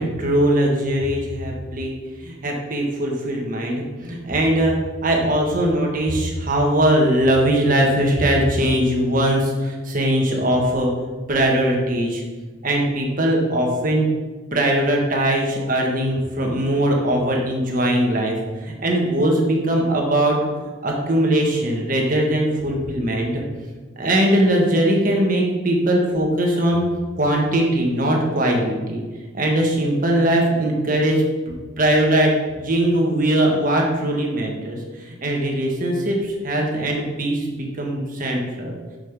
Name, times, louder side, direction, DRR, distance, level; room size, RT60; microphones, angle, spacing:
voice 1, 0.0-1.9 2.2-4.7 5.0-10.9 11.3-12.2 12.6-14.1 14.5-20.4 20.8-23.4 24.0-26.8 27.2-29.0 29.3-38.7, right 1 dB, 45° right, 0 dB, 1.4 m, -20 dB
6.5 x 5.1 x 5.1 m, 1.3 s
head